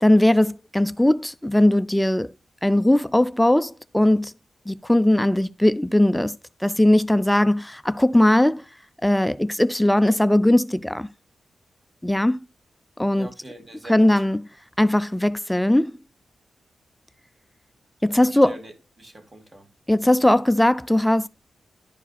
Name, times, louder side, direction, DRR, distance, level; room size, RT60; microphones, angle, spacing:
voice 1, 0.0-2.3 2.6-4.3 4.7-6.4 6.6-8.6 9.0-11.1 12.0-12.4 13.0-13.3 13.9-14.4 14.8-16.0 18.0-18.6 19.9-21.3, left 1 dB, 5° left, 0.3 m, -19 dB
voice 2, 13.1-14.2 18.1-18.7 19.0-19.7, right 1 dB, 30° right, 2.1 m, -43 dB
10.5 x 4.8 x 4.1 m
cardioid pair, 80°, 0 cm